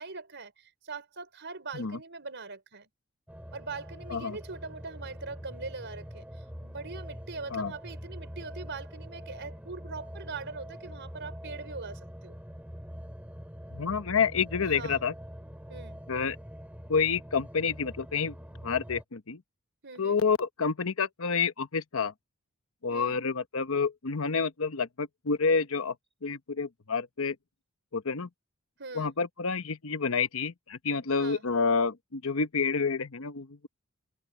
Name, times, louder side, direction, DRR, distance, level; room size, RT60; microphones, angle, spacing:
voice 1, 0.0-2.9 3.5-12.4 14.6-15.0 15.7-16.0 19.8-20.2 22.9-23.2 28.8-29.1 31.2-31.4, right 4 dB, 55° right, 4.6 m, -42 dB
sound 1, 3.3-19.0, equal, 5° right, 6.7 m, -44 dB
voice 2, 13.7-15.1 16.1-16.4 16.9-18.3 18.6-19.4 20.0-22.1 22.8-25.9 26.2-27.4 27.9-28.3 28.9-33.7, left 5 dB, 70° left, 1.0 m, -29 dB
head